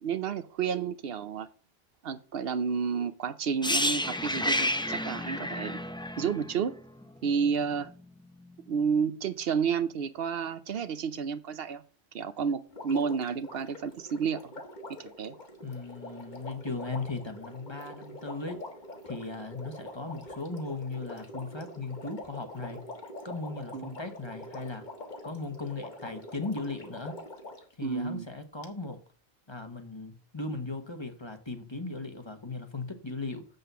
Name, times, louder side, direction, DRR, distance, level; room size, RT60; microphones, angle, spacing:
voice 1, 0.0-1.5 2.0-5.8 6.2-6.7 7.2-7.9 8.7-11.8 12.1-14.5 15.0-15.3 23.7-24.0 27.8-28.3, right 6 dB, 70° right, 0.9 m, -31 dB
sound 1, 3.6-7.5 7.7-7.9, left 1 dB, 5° left, 0.4 m, -30 dB
Water, 12.7-27.7 28.6-28.7, left 1 dB, 45° left, 1.7 m, -45 dB
voice 2, 15.6-18.6 19.0-22.8 23.2-24.8 25.2-27.2 27.8-29.0 29.5-33.5, left 3 dB, 25° left, 1.2 m, -37 dB
7.6 x 6.7 x 6.8 m
omnidirectional pair, 1.1 m